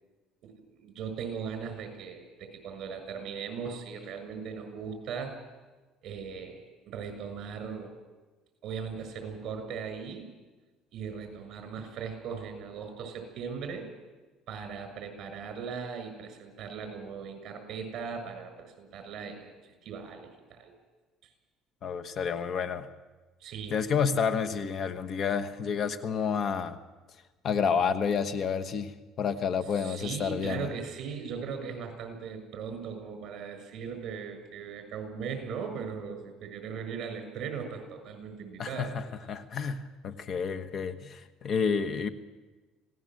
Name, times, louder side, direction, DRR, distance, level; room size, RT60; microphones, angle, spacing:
voice 1, 0.4-5.3 6.0-6.6 6.9-7.9 8.6-10.3 10.9-13.9 14.5-19.5 19.8-20.7 23.4-23.8 29.7-38.9, right 6 dB, 50° right, 7 dB, 7.1 m, -38 dB
voice 2, 21.8-22.9 23.7-26.8 27.4-30.7 38.6-42.1, left 6 dB, 40° left, 10 dB, 1.3 m, -30 dB
26.5 x 18.5 x 7.8 m, 1.2 s
cardioid pair, 130°, 0 cm